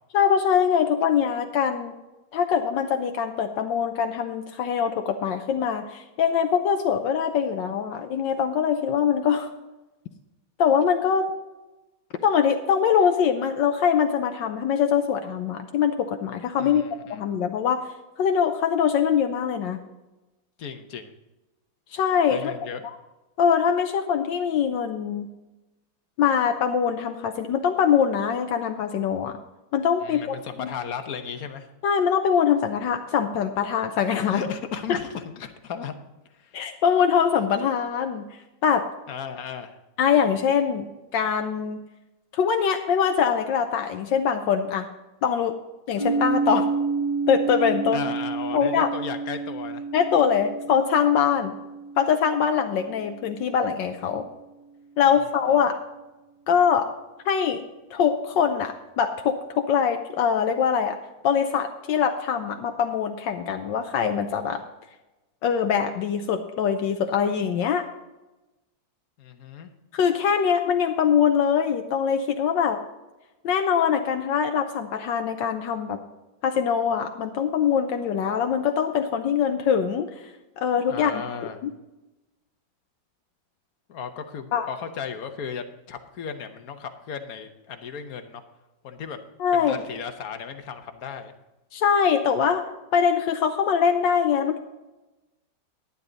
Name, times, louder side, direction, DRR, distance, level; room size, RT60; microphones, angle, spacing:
voice 1, 0.1-1.9 2.3-9.5 10.6-11.3 12.2-16.8 17.1-17.8 18.2-19.8 21.9-22.6 23.4-25.3 26.2-29.4 29.7-30.7 31.8-34.4 34.9-35.0 36.5-38.2 38.6-38.9 40.0-41.8 42.3-44.9 45.2-45.5 45.9-46.7 47.3-48.1 48.5-48.9 49.9-51.6 52.0-54.3 55.0-55.8 56.5-56.9 57.2-57.6 57.9-61.0 61.2-64.6 65.4-67.9 69.9-72.8 73.4-76.0 76.4-80.3 80.6-81.2 81.6-81.7 84.5-84.7 89.4-89.7 91.7-92.7 92.9-94.6, left 7 dB, 75° left, 6 dB, 1.4 m, -23 dB
voice 2, 16.6-17.3 20.6-21.1 22.3-22.8 30.0-31.7 34.2-35.9 36.3-36.6 39.1-39.8 47.9-49.8 55.2-55.3 69.2-69.7 80.9-81.6 83.9-88.4 88.8-89.2 89.5-91.3, left 7 dB, 55° left, 7 dB, 1.3 m, -35 dB
sound 1, 46.0-53.8, right 4 dB, 90° right, 4.2 m, -30 dB
11.0 x 10.5 x 4.0 m, 1.0 s
omnidirectional pair, 2.0 m